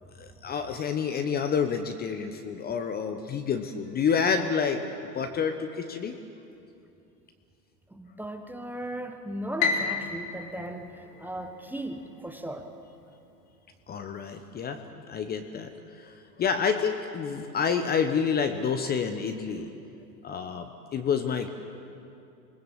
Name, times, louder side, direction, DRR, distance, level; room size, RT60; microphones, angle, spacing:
voice 1, 0.2-4.8 5.1-6.1 13.9-14.8 15.1-15.7 16.0-16.1 16.4-19.7 20.2-20.6 20.9-21.5, left 6 dB, 20° left, 7 dB, 1.0 m, -28 dB
voice 2, 7.9-12.7, right 1 dB, 5° right, 5 dB, 1.2 m, -37 dB
Piano, 9.6-11.9, left 5 dB, 40° left, 3.1 m, -31 dB
26.5 x 20.0 x 7.4 m, 2.6 s
hypercardioid pair, 110°, 49 cm